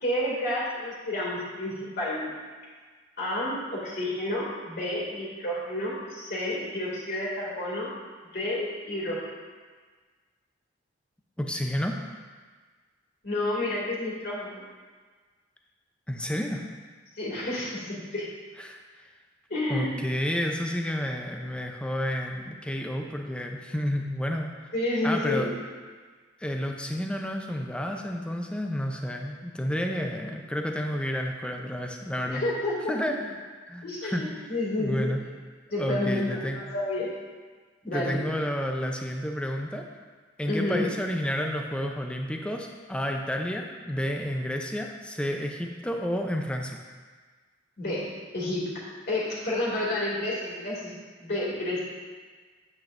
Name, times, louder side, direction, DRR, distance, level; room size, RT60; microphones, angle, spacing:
voice 1, 0.0-2.3 3.2-7.9 8.3-9.3 13.2-14.6 17.2-18.3 19.5-20.0 24.7-25.5 32.2-32.9 33.8-35.1 35.7-37.1 37.9-38.3 40.5-40.9 47.8-48.7 49.1-50.9 51.2-51.8, left 1 dB, 55° left, -6 dB, 2.4 m, -30 dB
voice 2, 11.4-12.0 16.1-16.6 18.6-18.8 19.7-24.5 25.0-25.5 26.4-32.4 32.9-33.4 33.7-34.5 34.8-35.2 35.8-36.6 37.9-39.8 40.4-46.8, equal, 5° left, 2 dB, 0.6 m, -30 dB
8.7 x 8.6 x 2.6 m, 1.5 s
head